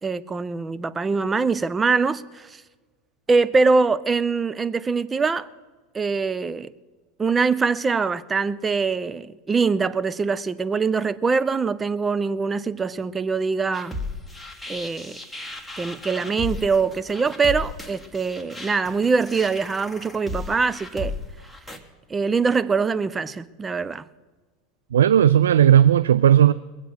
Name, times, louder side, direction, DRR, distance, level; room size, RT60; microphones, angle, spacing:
voice 1, 0.0-2.6 3.3-5.5 5.9-6.7 7.2-14.0 14.7-15.2 15.8-21.2 22.1-24.0, right 4 dB, 20° right, 0.7 m, -23 dB
sound 1, 13.7-21.8, left 2 dB, ahead, 1.8 m, -35 dB
voice 2, 24.9-26.5, right 10 dB, 85° right, 0.3 m, -15 dB
21.5 x 8.1 x 6.3 m
hypercardioid pair, 90°, 0 cm